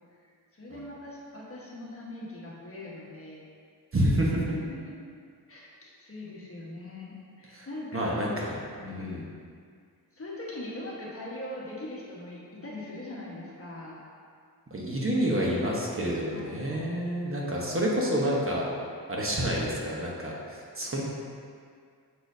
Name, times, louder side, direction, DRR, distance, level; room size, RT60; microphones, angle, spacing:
voice 1, 0.5-3.5 4.5-4.8 5.5-8.3 8.7-9.4 10.1-14.0 16.3-17.0, left 2 dB, 35° left, -5 dB, 1.3 m, -41 dB
voice 2, 3.9-4.4 7.5-7.7 7.9-8.6 8.9-9.2 14.7-18.6 19.1-21.0, equal, 35° right, -4 dB, 1.0 m, -28 dB
6.7 x 6.1 x 2.7 m, 2.2 s
wide cardioid pair, 100°, 40 cm